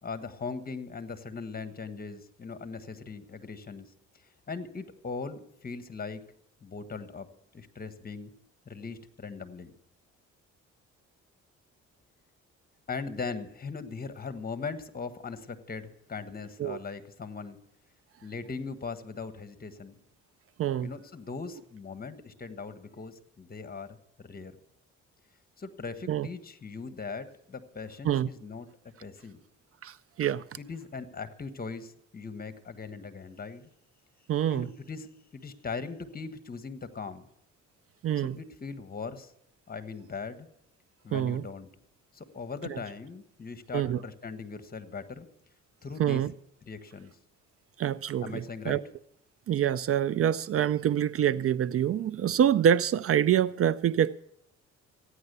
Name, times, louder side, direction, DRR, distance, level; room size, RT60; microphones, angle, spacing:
voice 1, 0.0-3.9 4.5-6.3 6.6-7.3 7.5-8.3 8.7-9.7 12.9-17.6 18.2-20.0 20.8-24.6 25.6-28.7 29.0-29.4 30.6-33.7 34.5-37.2 38.2-39.3 39.7-40.5 41.0-41.7 42.1-45.3 45.8-46.2 46.7-47.1 48.2-48.8, left 4 dB, 30° left, 1.4 m, -39 dB
voice 2, 20.6-20.9 26.1-26.3 28.1-28.3 29.8-30.4 34.3-34.7 38.0-38.4 41.1-41.4 42.7-42.8 43.7-44.0 46.0-46.3 47.8-48.8 49.5-54.2, right 10 dB, 50° right, 0.5 m, -26 dB
15.0 x 10.0 x 6.7 m
cardioid pair, 90°, 30 cm